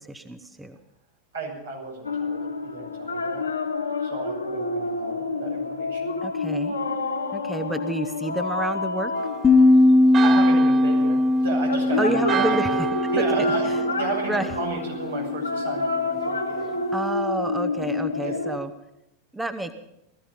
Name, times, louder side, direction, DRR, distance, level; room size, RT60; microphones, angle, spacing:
voice 1, 0.1-0.8 6.2-6.8 7.3-9.1 12.0-12.8 13.2-13.3 14.3-14.5 16.9-18.7 19.3-19.7, right 2 dB, 10° right, 9 dB, 1.0 m, -29 dB
voice 2, 1.3-3.4 4.0-6.2 10.2-12.5 13.1-16.7 18.1-18.4, right 4 dB, 80° right, -1 dB, 6.6 m, -33 dB
sound 1, 2.0-10.3 11.7-18.6, left 3 dB, 90° left, 1.4 m, -28 dB
Church bell, 9.1-14.9, right 9 dB, 30° right, 0.6 m, -32 dB
sound 2, 9.4-14.6, left 2 dB, 20° left, 1.4 m, -20 dB
19.5 x 14.0 x 5.3 m, 0.82 s
figure-of-eight pair, 90°, 0 cm